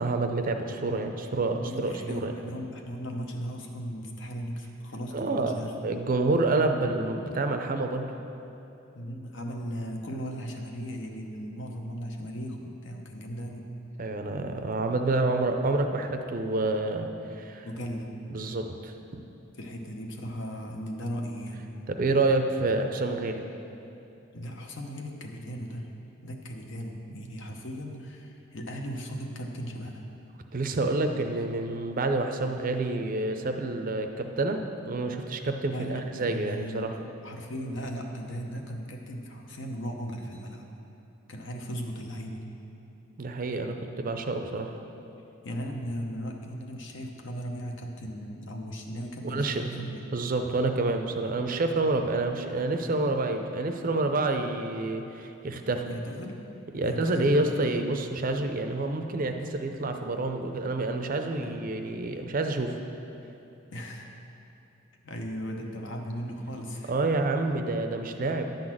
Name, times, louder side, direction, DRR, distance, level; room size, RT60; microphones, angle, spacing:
voice 1, 0.0-2.3 5.1-5.5 5.8-8.1 14.0-17.7 18.3-19.2 21.9-23.4 30.5-36.9 43.2-44.8 49.2-49.7 50.1-55.9 56.7-62.8 66.9-68.5, right 2 dB, 45° right, 6 dB, 0.5 m, -28 dB
voice 2, 1.5-5.7 8.9-13.7 17.6-18.2 19.5-21.7 24.3-25.9 26.2-30.1 35.7-40.6 41.3-42.4 45.4-50.0 55.8-56.4 56.8-57.5 61.4-61.6 63.7-64.2 65.0-66.9 68.2-68.6, equal, 60° left, 2 dB, 0.9 m, -37 dB
10.5 x 4.0 x 7.5 m, 2.8 s
head